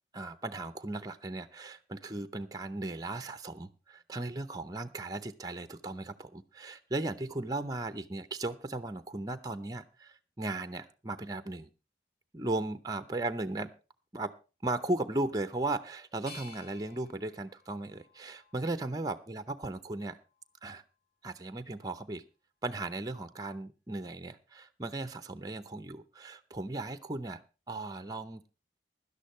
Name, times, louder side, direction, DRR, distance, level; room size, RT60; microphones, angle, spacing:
voice 1, 0.1-11.7 12.3-13.7 14.1-14.3 14.6-20.2 20.6-20.8 21.2-22.2 22.6-27.4 27.7-28.4, right 2 dB, 20° right, 10 dB, 0.6 m, -36 dB
sound 1, 16.3-19.2 19.7-20.5, left 3 dB, 60° left, 3.0 m, -54 dB
17.0 x 11.5 x 3.1 m, 0.31 s
head